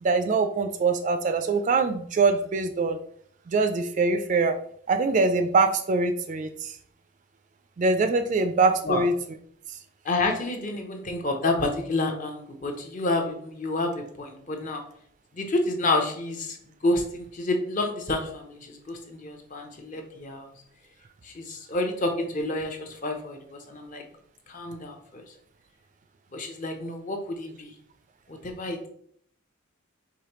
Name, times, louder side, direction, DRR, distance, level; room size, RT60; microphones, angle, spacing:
voice 1, 0.0-3.0 3.5-4.6 4.9-6.7 7.8-9.1, right 3 dB, 35° right, 7 dB, 0.3 m, -23 dB
voice 2, 10.0-14.8 15.3-16.6 16.8-20.5 21.2-24.0 24.5-25.2 26.3-27.7 28.3-28.9, left 2 dB, 35° left, 4 dB, 0.6 m, -29 dB
4.8 x 3.2 x 2.9 m, 0.64 s
head